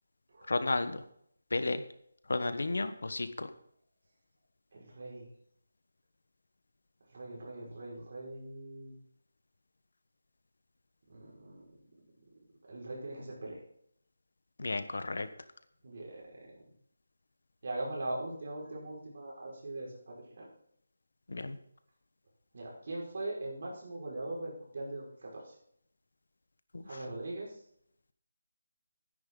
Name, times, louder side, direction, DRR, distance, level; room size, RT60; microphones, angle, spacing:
voice 1, 0.5-1.0 1.5-1.8 2.3-3.5 14.6-15.3 21.3-21.6 26.7-27.0, left 2 dB, 75° left, 11 dB, 1.2 m, -33 dB
voice 2, 4.7-5.3 7.1-8.9 11.1-11.7 12.7-13.6 15.8-16.5 17.6-20.5 22.5-25.5 26.8-27.6, right 2 dB, 45° right, -3 dB, 5.0 m, -41 dB
12.5 x 10.0 x 3.8 m, 0.69 s
figure-of-eight pair, 175°, 0 cm